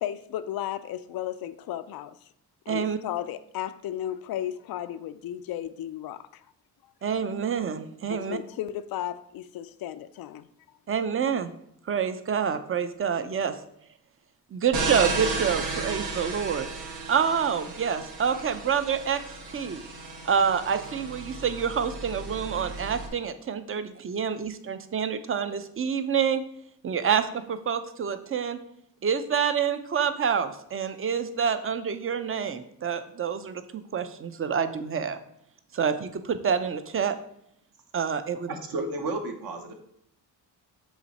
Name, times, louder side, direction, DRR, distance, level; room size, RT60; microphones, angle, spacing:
voice 1, 0.0-2.2 2.7-6.4 8.1-10.5, left 11 dB, 60° left, 12 dB, 0.5 m, -34 dB
voice 2, 2.7-3.0 7.0-8.4 10.9-11.5 11.9-13.6 14.5-16.7 17.1-19.2 19.5-19.8 20.3-26.4 26.8-28.6 29.0-35.2 35.7-37.2 37.9-38.5, right 7 dB, 30° right, 11 dB, 0.6 m, -27 dB
sound 1, 14.7-23.1, right 3 dB, 75° right, 1.3 m, -34 dB
voice 3, 38.5-39.7, right 2 dB, 60° right, 4 dB, 1.1 m, -32 dB
7.2 x 3.1 x 4.2 m, 0.72 s
cardioid pair, 75°, 41 cm